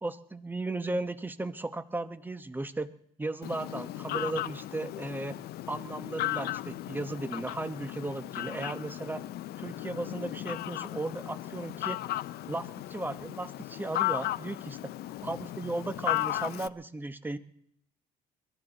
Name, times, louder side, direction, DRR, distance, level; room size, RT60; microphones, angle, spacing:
voice 1, 0.0-2.9 3.2-5.4 5.7-9.2 9.6-12.0 12.4-14.8 15.2-17.4, right 2 dB, 10° right, 11 dB, 1.0 m, -36 dB
Fowl, 3.4-16.7, left 15 dB, 70° left, 0.5 m, -36 dB
22.5 x 15.5 x 4.0 m, 0.69 s
cardioid pair, 110°, 17 cm